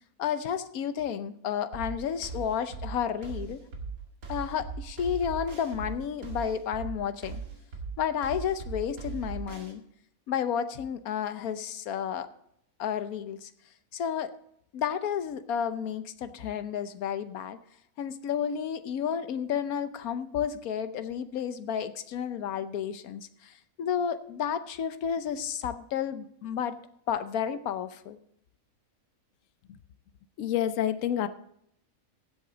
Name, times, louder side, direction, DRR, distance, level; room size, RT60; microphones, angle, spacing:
voice 1, 0.2-3.6 4.3-7.4 8.0-9.8 10.3-12.3 12.8-13.5 13.9-14.3 14.7-17.6 18.0-26.8 27.1-28.2, left 8 dB, 85° left, 12 dB, 1.2 m, -31 dB
sound 1, 1.7-9.7, right 4 dB, 80° right, 2.5 m, -39 dB
voice 2, 30.4-31.3, left 10 dB, 70° left, 12 dB, 1.0 m, -27 dB
16.0 x 8.1 x 3.9 m, 0.72 s
omnidirectional pair, 1.5 m